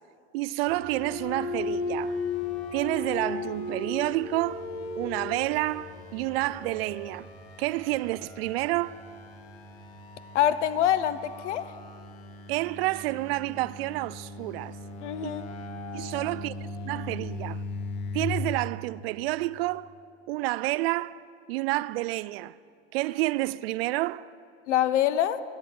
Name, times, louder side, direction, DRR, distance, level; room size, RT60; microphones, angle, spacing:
voice 1, 0.3-2.2 2.7-4.7 5.0-7.3 7.6-9.0 12.5-14.8 15.2-15.3 15.9-16.5 16.9-17.6 18.1-19.9 20.3-21.2 21.5-22.5 22.9-24.3, right 19 dB, 60° right, 0.4 m, -29 dB
sound 1, 0.7-18.2, left 3 dB, 65° left, 2.0 m, -37 dB
voice 2, 10.3-11.7 15.0-15.5 24.7-25.4, left 11 dB, 85° left, 0.9 m, -25 dB
12.5 x 10.5 x 8.9 m
supercardioid pair, 130°, 35 cm